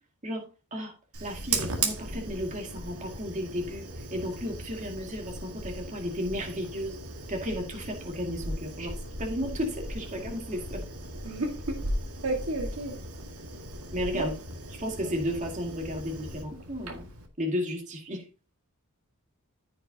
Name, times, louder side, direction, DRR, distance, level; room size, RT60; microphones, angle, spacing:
Fire, 1.1-17.3, right 2 dB, 85° right, 1.9 m, -37 dB
voice 1, 1.2-7.0 7.3-10.8 13.9-14.3 14.7-17.1 17.4-18.2, equal, 35° right, 2.0 m, -33 dB
voice 2, 11.2-11.8 12.2-13.0 14.1-14.3 15.0-15.1, right 2 dB, 70° right, 1.6 m, -32 dB
14.5 x 5.9 x 2.7 m
head